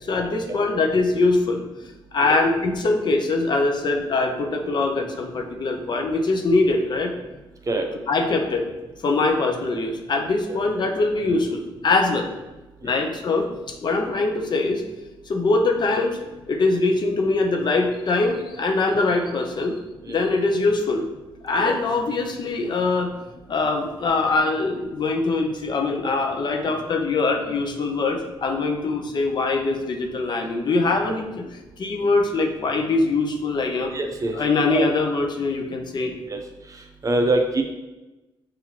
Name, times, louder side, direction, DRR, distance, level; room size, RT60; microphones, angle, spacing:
voice 1, 0.0-1.6 2.1-7.1 8.1-8.7 9.0-12.3 12.8-14.8 15.3-16.2 16.5-19.8 20.1-21.0 21.4-23.1 23.5-33.9 34.3-36.2, left 3 dB, 50° left, 3 dB, 0.6 m, -23 dB
voice 2, 33.9-34.4 34.7-34.9 36.3-36.4 37.0-37.6, right 2 dB, 35° right, 3 dB, 0.6 m, -23 dB
5.7 x 2.5 x 2.8 m, 1.1 s
cardioid pair, 75°, 10 cm